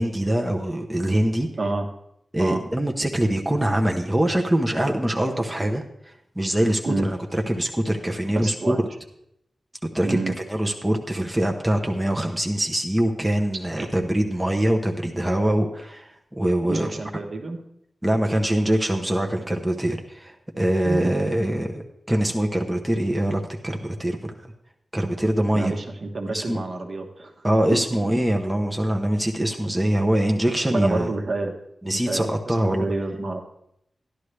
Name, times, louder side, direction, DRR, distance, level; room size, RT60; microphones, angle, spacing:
voice 1, 0.0-1.5 2.3-5.8 6.4-8.8 9.9-16.9 18.0-24.3 24.9-25.7 26.3-26.6 27.4-31.1 31.8-32.9, right 1 dB, 10° right, 2 dB, 0.8 m, -23 dB
voice 2, 1.6-1.9 2.4-2.6 6.8-7.1 8.3-8.8 10.0-10.3 13.8-13.9 16.7-17.6 20.8-21.1 25.5-27.3 30.7-31.5 31.8-33.4, right 2 dB, 50° right, 3 dB, 1.2 m, -28 dB
13.0 x 11.0 x 3.3 m, 0.77 s
wide cardioid pair, 140°, 0 cm